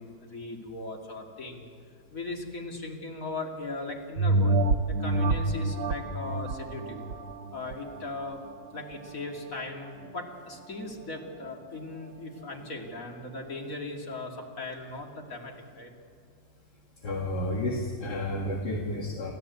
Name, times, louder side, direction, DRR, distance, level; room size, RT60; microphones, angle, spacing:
voice 1, 0.0-1.6 2.1-4.6 4.9-7.1 7.5-8.4 8.7-15.9, left 2 dB, 45° left, 1 dB, 3.0 m, -38 dB
sound 1, 4.2-9.1 9.6-9.7, right 2 dB, 70° right, 1.5 m, -28 dB
voice 2, 17.0-19.3, left 1 dB, 60° left, -1 dB, 2.5 m, -31 dB
29.0 x 14.0 x 8.3 m, 2.3 s
omnidirectional pair, 2.0 m